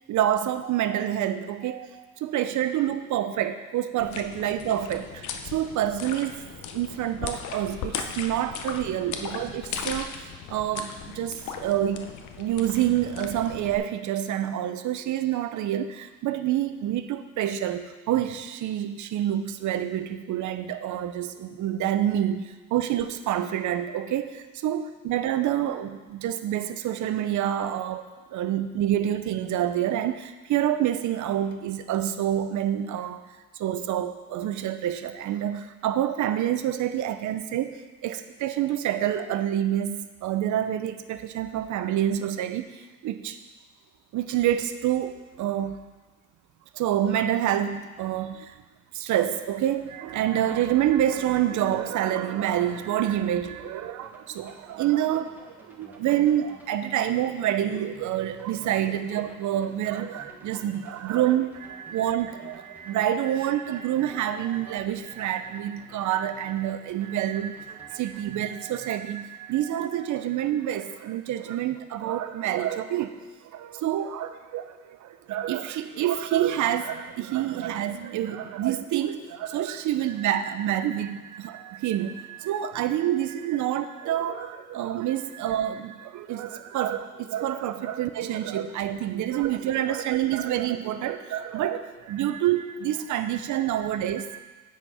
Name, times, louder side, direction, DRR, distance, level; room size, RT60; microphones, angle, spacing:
voice 1, 0.1-5.3 5.5-6.4 6.7-33.2 33.6-43.4 44.1-45.8 46.7-48.5 48.9-73.2 73.4-94.4, right 11 dB, 75° right, 11 dB, 0.6 m, -27 dB
Water splashes from child stamping in puddle, 4.0-13.8, left 7 dB, 75° left, 0.7 m, -37 dB
sound 1, 54.0-68.2, right 1 dB, 5° right, 1.3 m, -53 dB
8.7 x 4.3 x 4.9 m, 1.3 s
cardioid pair, 90°, 30 cm